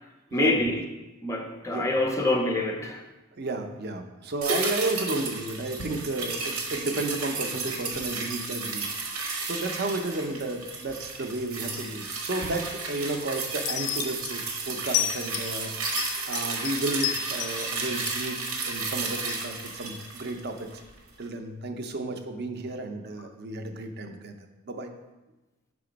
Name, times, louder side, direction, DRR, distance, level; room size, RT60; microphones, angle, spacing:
voice 1, 0.3-0.8 1.2-3.0, left 1 dB, 15° left, 3 dB, 0.4 m, -26 dB
voice 2, 3.3-15.7 16.3-18.4 18.7-20.7 21.2-24.9, right 2 dB, 45° right, 6 dB, 0.5 m, -33 dB
sound 1, 4.4-20.9 21.2-21.3, right 4 dB, 90° right, 1.0 m, -33 dB
sound 2, 13.6-14.3 14.9-15.5 15.9-17.7 18.1-18.8 19.3-19.5, left 12 dB, 85° left, 0.5 m, -31 dB
5.9 x 3.7 x 5.0 m, 1.1 s
head